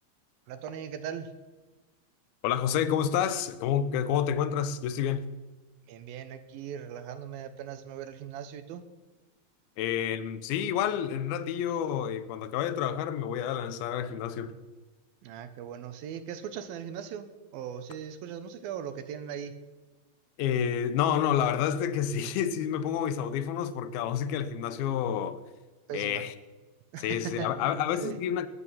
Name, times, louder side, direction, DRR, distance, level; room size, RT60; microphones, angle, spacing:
voice 1, 0.5-1.3 5.9-8.8 15.2-17.3 17.5-19.5 25.9-26.2 26.9-28.2, right 8 dB, 75° right, 2.7 m, -39 dB
voice 2, 2.4-5.3 9.8-14.6 20.4-25.4 25.9-26.3 27.0-28.5, left 9 dB, 80° left, 2.7 m, -29 dB
20.0 x 9.8 x 5.7 m
omnidirectional pair, 4.4 m